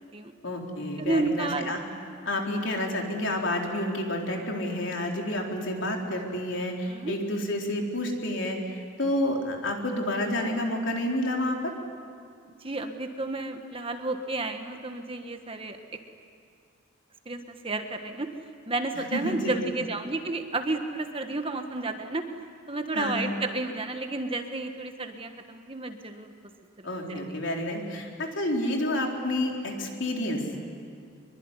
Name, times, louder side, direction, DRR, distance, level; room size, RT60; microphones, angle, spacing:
voice 1, 0.4-1.8 2.2-11.7 18.9-19.6 23.0-23.3 26.8-30.4, left 1 dB, 65° left, 1 dB, 4.1 m, -29 dB
voice 2, 1.0-1.7 6.1-6.2 6.9-7.1 12.6-15.8 17.2-18.3 18.7-22.2 22.7-26.3 26.8-27.4, right 2 dB, 25° right, 6 dB, 1.5 m, -31 dB
24.5 x 23.0 x 9.9 m, 2.3 s
head